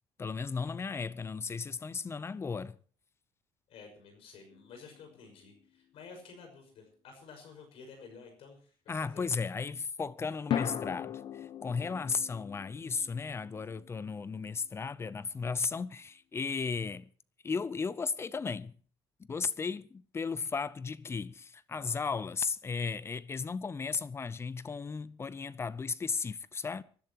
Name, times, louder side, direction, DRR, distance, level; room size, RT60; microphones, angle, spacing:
voice 1, 0.2-2.8 8.9-17.1 17.4-18.8 19.3-26.8, left 5 dB, 25° left, 0.7 m, -35 dB
voice 2, 3.7-9.3 21.7-21.9, left 5 dB, 70° left, 5.7 m, -52 dB
sound 1, 4.5-5.6 10.5-14.8, left 10 dB, 55° left, 0.9 m, -39 dB
26.0 x 11.5 x 3.0 m
cardioid pair, 120°, 10 cm